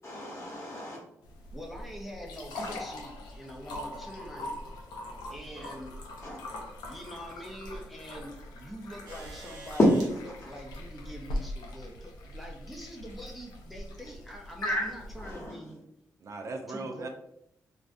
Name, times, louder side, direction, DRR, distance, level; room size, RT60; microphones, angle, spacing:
voice 1, 0.0-1.0 2.6-2.8 6.2-6.4 9.8-10.5 14.6-14.9 15.2-15.6, left 1 dB, 40° left, 1.1 m, -28 dB
sound 1, 1.2-15.5, left 1 dB, 85° left, 0.4 m, -42 dB
voice 2, 1.5-4.6 5.3-5.9 6.9-9.8 10.3-15.8 16.7-17.1, equal, ahead, 0.6 m, -44 dB
voice 3, 5.3-5.7 16.2-17.1, right 3 dB, 50° right, 0.4 m, -39 dB
sound 2, 9.1-10.1 11.5-11.6 12.9-13.2 14.1-14.2, right 2 dB, 75° right, 0.7 m, -47 dB
2.4 x 2.0 x 2.5 m
supercardioid pair, 50°, 7 cm